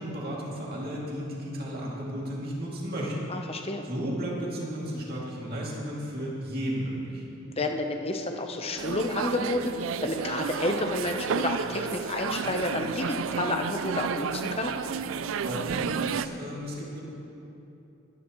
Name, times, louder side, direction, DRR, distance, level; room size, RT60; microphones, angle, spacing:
voice 1, 0.0-3.3 3.9-7.2 15.4-17.0, equal, 45° right, -4 dB, 2.6 m, -33 dB
voice 2, 3.3-3.8 7.5-14.7, left 2 dB, 30° left, 4 dB, 0.9 m, -30 dB
sound 1, 8.8-16.3, right 6 dB, 75° right, 0.4 m, -31 dB
23.0 x 11.0 x 3.1 m, 2.9 s
head